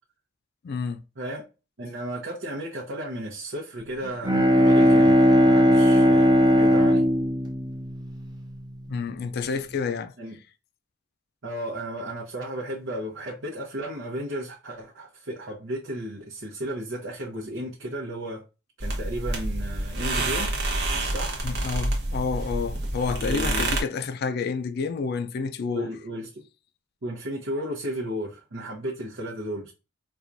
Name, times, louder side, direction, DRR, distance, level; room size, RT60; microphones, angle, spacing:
voice 1, 0.6-1.0 8.9-10.1 21.4-25.9, left 5 dB, 55° left, 0.3 m, -29 dB
voice 2, 1.2-1.5 1.8-7.0 10.2-10.4 11.4-18.4 18.8-20.5 21.1-21.4 23.2-23.7 25.7-26.5 27.0-29.7, right 1 dB, 80° right, 0.8 m, -34 dB
Bowed string instrument, 4.0-8.8, equal, 20° right, 0.5 m, -19 dB
sound 1, 18.8-23.8, right 2 dB, 60° right, 0.9 m, -28 dB
4.4 x 2.3 x 2.5 m
head